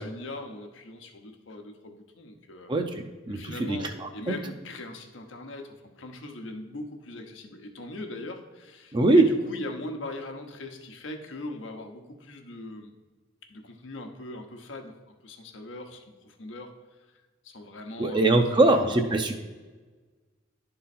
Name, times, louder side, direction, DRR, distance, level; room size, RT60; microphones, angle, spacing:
voice 1, 0.0-2.8 3.3-12.9 13.5-14.9 15.2-16.7 17.4-19.1, left 1 dB, 80° left, 4 dB, 0.9 m, -40 dB
voice 2, 3.3-4.4 8.9-9.2 18.0-19.3, right 2 dB, 25° right, 4 dB, 0.5 m, -22 dB
10.5 x 3.8 x 4.2 m, 1.3 s
head